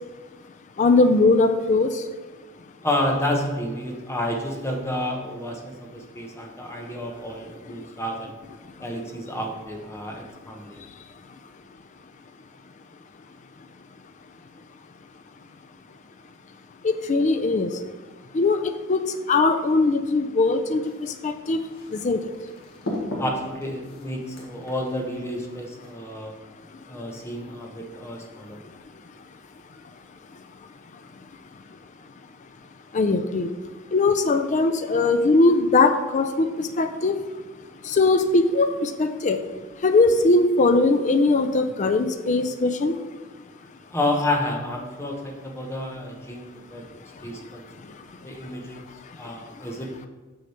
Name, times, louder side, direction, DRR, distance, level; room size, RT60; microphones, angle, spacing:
voice 1, 0.8-1.9 16.8-17.7 18.3-18.6 18.9-19.0 19.3-20.8 21.2-21.6 22.0-22.2 32.9-33.5 33.9-37.2 37.9-39.4 39.8-42.9, left 3 dB, 35° left, 7 dB, 0.4 m, -20 dB
voice 2, 2.8-8.4 8.8-10.8 23.2-26.3 26.9-28.6 43.9-46.9 47.2-47.6 48.2-48.8 49.2-49.9, left 1 dB, 15° left, 1 dB, 1.0 m, -30 dB
sound 1, 20.8-25.9, left 1 dB, 70° left, 1.7 m, -37 dB
6.4 x 6.4 x 4.4 m, 1.3 s
head